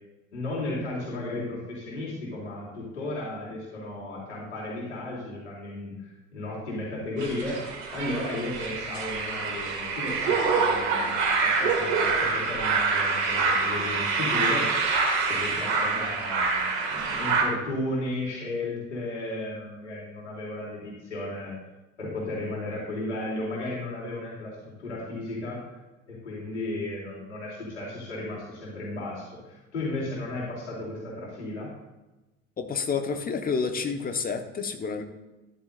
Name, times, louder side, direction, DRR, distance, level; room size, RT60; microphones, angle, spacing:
voice 1, 0.3-7.6 7.9-14.9 15.3-21.5 22.0-25.6 26.1-31.7, left 2 dB, 75° left, -5 dB, 3.3 m, -34 dB
sound 1, 7.2-17.4, right 4 dB, 65° right, 2.3 m, -26 dB
voice 2, 32.6-35.0, left 5 dB, 25° left, 7 dB, 1.3 m, -29 dB
14.0 x 10.5 x 2.6 m, 1.1 s
figure-of-eight pair, 65°, 35 cm